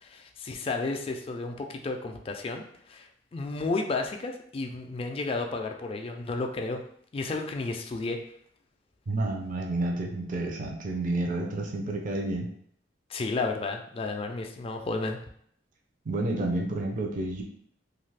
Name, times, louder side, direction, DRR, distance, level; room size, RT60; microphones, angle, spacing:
voice 1, 0.0-3.1 3.3-6.8 7.1-8.2 13.1-15.2, left 3 dB, 30° left, 4 dB, 0.3 m, -32 dB
voice 2, 9.1-12.5 16.1-17.4, right 2 dB, 45° right, 1 dB, 0.5 m, -30 dB
2.6 x 2.4 x 3.3 m, 0.66 s
head